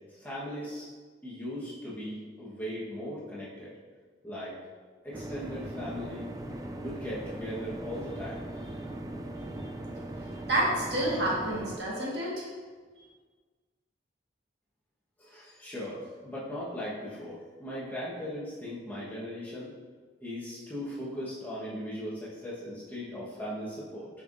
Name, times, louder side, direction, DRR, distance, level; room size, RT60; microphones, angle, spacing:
voice 1, 0.1-0.9 1.2-3.7 4.2-4.6 5.0-6.3 6.8-8.8 15.2-19.7 20.2-24.1, equal, 10° left, -8 dB, 1.2 m, -38 dB
sound 1, 5.1-11.8, right 1 dB, 20° right, 0.3 m, -39 dB
voice 2, 10.5-12.5, right 1 dB, 70° right, -5 dB, 1.7 m, -29 dB
6.7 x 5.5 x 2.6 m, 1.5 s
head